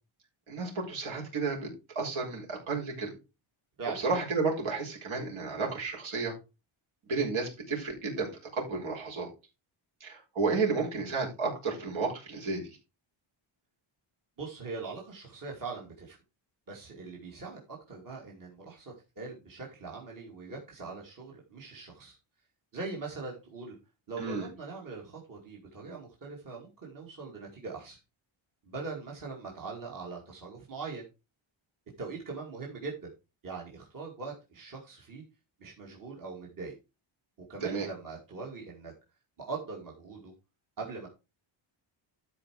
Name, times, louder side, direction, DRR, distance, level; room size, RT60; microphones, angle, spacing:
voice 1, 0.5-1.7 1.9-3.1 3.9-6.3 7.1-9.3 10.0-12.6 24.2-24.5 37.6-37.9, right 4 dB, 70° right, -1 dB, 4.8 m, -32 dB
voice 2, 14.4-16.2 16.7-22.2 22.7-23.8 24.1-28.0 28.6-31.1 32.0-33.1 33.4-35.2 35.6-36.7 37.5-38.9 39.4-40.3 40.8-41.1, right 4 dB, 40° right, -2 dB, 2.5 m, -41 dB
12.5 x 4.8 x 4.8 m, 0.28 s
wide cardioid pair, 155°, 49 cm